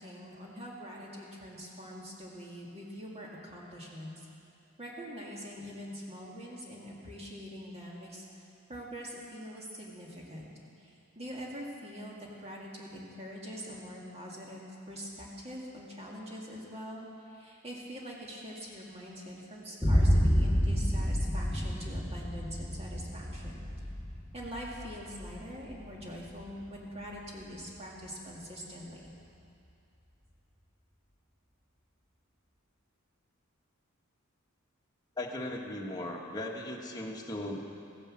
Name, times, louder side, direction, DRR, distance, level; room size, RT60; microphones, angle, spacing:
voice 1, 0.0-4.2 4.8-10.5 10.8-23.7 24.3-29.1, equal, 30° right, -4 dB, 2.2 m, -44 dB
Boom, 19.8-27.7, equal, ahead, 1.8 m, -30 dB
voice 2, 35.2-37.6, left 1 dB, 20° left, -1 dB, 1.5 m, -37 dB
15.5 x 10.5 x 7.4 m, 2.8 s
head